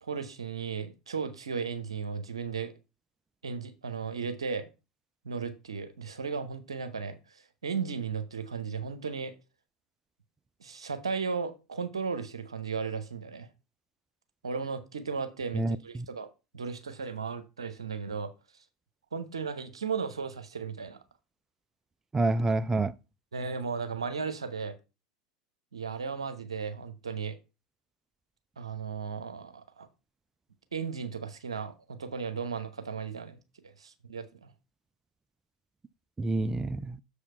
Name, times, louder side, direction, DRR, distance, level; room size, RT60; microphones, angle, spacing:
voice 1, 0.0-2.7 3.4-4.7 5.2-9.3 10.6-13.5 14.4-18.6 19.1-21.0 23.3-24.8 25.7-27.4 28.6-29.9 30.7-34.5, right 5 dB, 85° right, 1.0 m, -35 dB
voice 2, 15.5-16.1 22.1-22.9 36.2-37.0, right 2 dB, 15° right, 0.4 m, -28 dB
6.9 x 4.9 x 5.5 m
hypercardioid pair, 80°, 3 cm